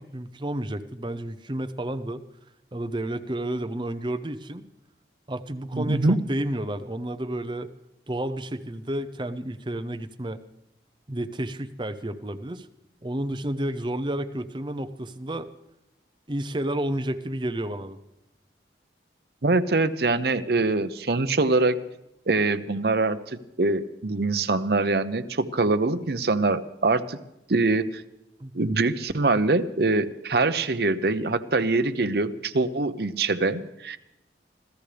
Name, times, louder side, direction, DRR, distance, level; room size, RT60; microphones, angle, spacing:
voice 1, 0.0-2.2 2.7-4.6 5.3-7.7 8.1-10.4 11.1-12.7 13.0-15.5 16.3-18.0 28.4-28.5, right 1 dB, 25° right, 8 dB, 0.7 m, -31 dB
voice 2, 5.7-6.2 19.4-21.8 22.3-27.2 27.5-28.0 28.5-34.0, right 3 dB, 60° right, 11 dB, 0.8 m, -24 dB
26.0 x 15.5 x 3.4 m, 0.88 s
head